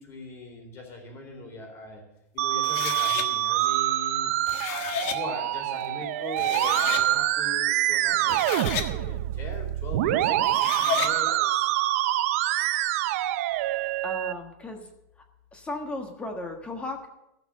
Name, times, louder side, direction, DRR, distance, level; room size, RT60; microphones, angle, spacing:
voice 1, 0.0-2.0 2.3-4.3 5.0-11.7, left 2 dB, 30° left, 2 dB, 4.0 m, -40 dB
Musical instrument, 2.4-14.3, right 14 dB, 65° right, 0.7 m, -26 dB
sound 1, 2.6-3.3 4.3-5.2 6.0-6.1 6.4-7.1 8.1-8.9 10.4-11.1, left 9 dB, 55° left, 1.4 m, -32 dB
voice 2, 14.0-14.9 15.5-17.1, left 2 dB, 15° left, 4 dB, 1.5 m, -35 dB
15.5 x 6.0 x 7.7 m, 0.88 s
supercardioid pair, 150°, 8 cm